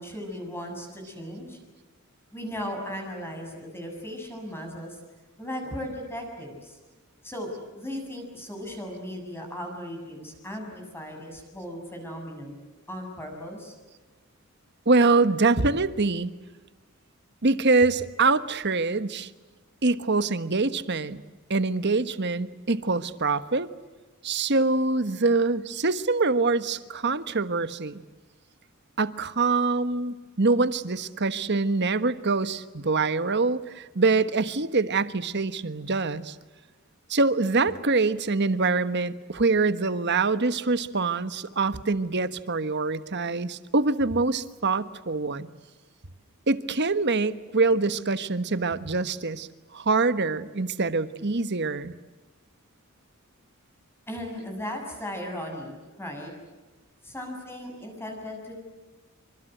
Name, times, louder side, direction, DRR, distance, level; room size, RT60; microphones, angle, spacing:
voice 1, 0.0-1.6 2.3-5.0 5.4-6.8 7.2-12.5 12.9-13.8 54.1-56.3 57.0-58.5, equal, 10° left, 2 dB, 7.2 m, -37 dB
voice 2, 14.9-16.3 17.4-19.3 19.8-21.2 21.5-23.7 24.2-28.0 29.0-36.3 37.1-45.5 46.5-51.9, right 3 dB, 50° right, 13 dB, 1.3 m, -24 dB
27.5 x 26.0 x 8.0 m, 1.2 s
head